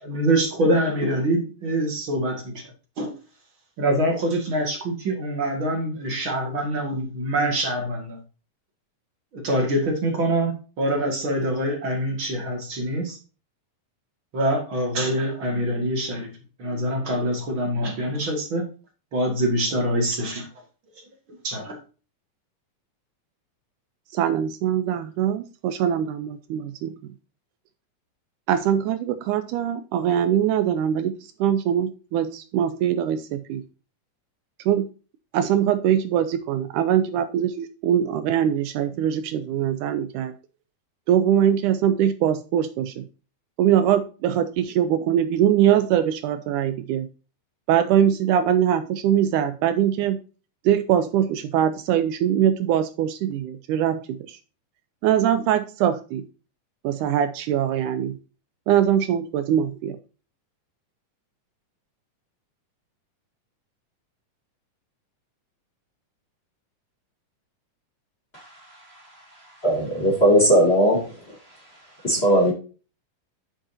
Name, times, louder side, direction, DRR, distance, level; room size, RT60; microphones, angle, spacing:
voice 1, 0.0-2.7 3.0-3.1 3.8-8.2 9.3-13.2 14.3-16.3 16.6-18.6 19.1-20.5 21.4-21.8, right 1 dB, 45° right, 2 dB, 2.4 m, -25 dB
voice 2, 24.1-26.9 28.5-31.1 31.4-33.6 34.7-34.9 35.3-40.3 41.1-43.0 43.6-47.1 47.7-50.2 50.7-54.4 55.0-56.3 56.8-58.2 58.7-60.0, right 10 dB, 80° right, 9 dB, 2.1 m, -22 dB
voice 3, 69.6-71.0 72.0-72.5, right 1 dB, 20° left, -2 dB, 2.3 m, -18 dB
9.3 x 7.4 x 2.8 m, 0.34 s
omnidirectional pair, 3.7 m